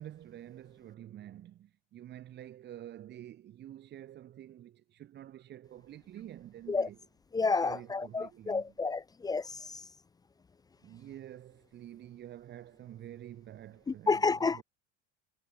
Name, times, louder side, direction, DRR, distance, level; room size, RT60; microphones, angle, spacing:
voice 1, 0.0-7.0 7.6-8.7 10.8-14.6, right 12 dB, 35° right, 4.0 m, -48 dB
voice 2, 7.3-9.8 13.9-14.6, left 4 dB, 10° left, 0.8 m, -30 dB
cardioid pair, 165°, 31 cm